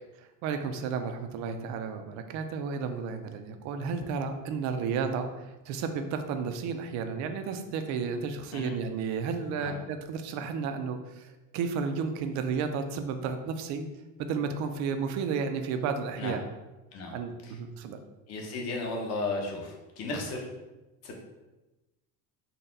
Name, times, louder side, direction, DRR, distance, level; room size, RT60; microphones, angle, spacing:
voice 1, 0.4-5.3 5.7-11.2 11.5-13.9 14.2-16.4 17.1-18.0, right 5 dB, 50° right, 7 dB, 0.4 m, -32 dB
voice 2, 18.3-20.5 21.0-21.1, left 3 dB, 45° left, 1 dB, 0.9 m, -34 dB
4.0 x 2.2 x 3.8 m, 1.1 s
cardioid pair, 150°, 37 cm